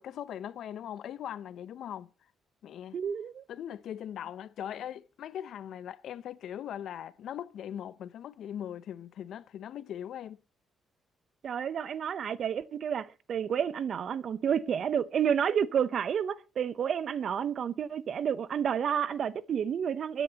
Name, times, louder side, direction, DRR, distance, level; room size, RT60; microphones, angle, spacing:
voice 1, 0.0-2.1 2.6-3.0 3.5-10.4, left 10 dB, 70° left, 0.6 m, -40 dB
voice 2, 2.9-3.4 11.4-20.2, right 8 dB, 60° right, 0.7 m, -30 dB
23.5 x 10.0 x 2.9 m
cardioid pair, 90°, 0 cm